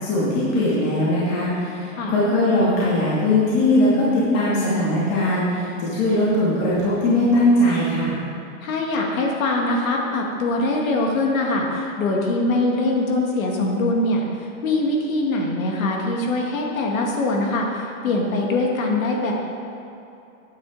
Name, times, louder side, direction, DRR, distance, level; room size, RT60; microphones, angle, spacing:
voice 1, 0.0-8.2, left 1 dB, 40° left, -8 dB, 2.6 m, -20 dB
voice 2, 8.6-19.3, left 2 dB, 80° left, 0 dB, 1.9 m, -23 dB
10.5 x 9.3 x 4.0 m, 2.7 s
supercardioid pair, 150°, 40 cm